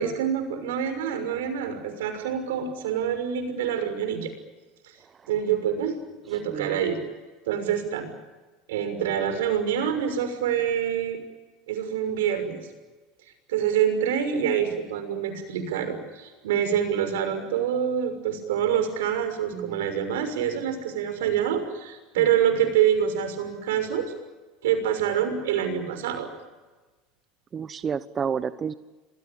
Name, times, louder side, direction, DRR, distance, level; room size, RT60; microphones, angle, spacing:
voice 1, 0.0-4.3 4.8-4.9 5.3-5.9 6.3-7.0 7.5-8.1 8.7-11.2 11.7-12.6 13.5-24.1 24.6-26.3, right 9 dB, 90° right, 8 dB, 6.3 m, -26 dB
voice 2, 6.5-6.8 19.5-19.8 27.5-28.7, right 7 dB, 30° right, 13 dB, 1.0 m, -30 dB
28.0 x 21.5 x 8.9 m, 1.2 s
supercardioid pair, 110°, 0 cm